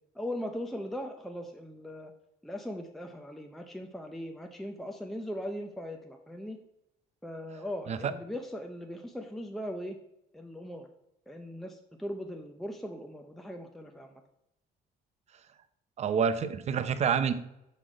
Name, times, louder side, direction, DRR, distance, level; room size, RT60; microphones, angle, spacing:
voice 1, 0.1-2.1 2.4-6.6 7.2-10.0 10.3-10.9 11.3-14.2, equal, ahead, 4 dB, 0.5 m, -39 dB
voice 2, 16.0-17.3, right 7 dB, 40° right, 11 dB, 0.6 m, -27 dB
6.5 x 3.9 x 4.9 m, 0.84 s
cardioid pair, 110°, 17 cm